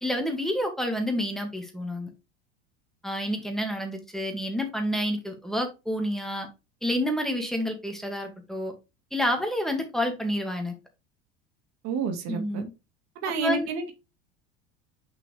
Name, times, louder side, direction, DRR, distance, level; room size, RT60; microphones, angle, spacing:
voice 1, 0.0-2.1 3.0-6.5 6.8-8.7 9.1-10.8 12.3-12.7 13.4-13.7, equal, ahead, 2.1 m, -29 dB
voice 2, 11.8-12.6 13.2-13.9, right 4 dB, 55° right, 1.9 m, -29 dB
6.0 x 5.9 x 3.3 m
hypercardioid pair, 90°, 32 cm